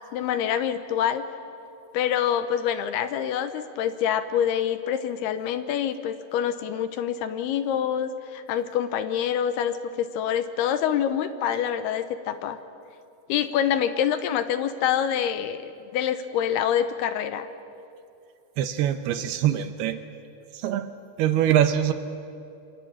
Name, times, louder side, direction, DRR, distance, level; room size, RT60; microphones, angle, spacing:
voice 1, 0.1-1.3 1.9-12.6 13.3-17.5, left 9 dB, 75° left, 11 dB, 2.6 m, -26 dB
voice 2, 18.6-20.0 20.5-20.9 21.2-21.9, right 11 dB, 75° right, 9 dB, 2.4 m, -23 dB
27.5 x 24.0 x 8.7 m, 2.7 s
omnidirectional pair, 5.4 m